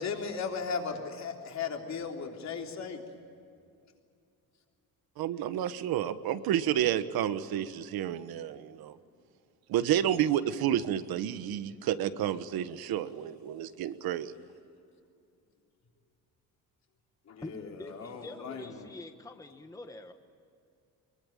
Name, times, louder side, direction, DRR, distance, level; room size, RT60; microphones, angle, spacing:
voice 1, 0.0-3.0 17.3-18.9, left 5 dB, 50° left, 1 dB, 3.7 m, -36 dB
voice 2, 5.2-9.0 9.7-14.3, right 11 dB, 85° right, 12 dB, 1.4 m, -30 dB
voice 3, 17.4-20.1, left 2 dB, 10° left, 6 dB, 1.2 m, -45 dB
24.5 x 23.0 x 8.9 m, 2.5 s
cardioid pair, 150°, 36 cm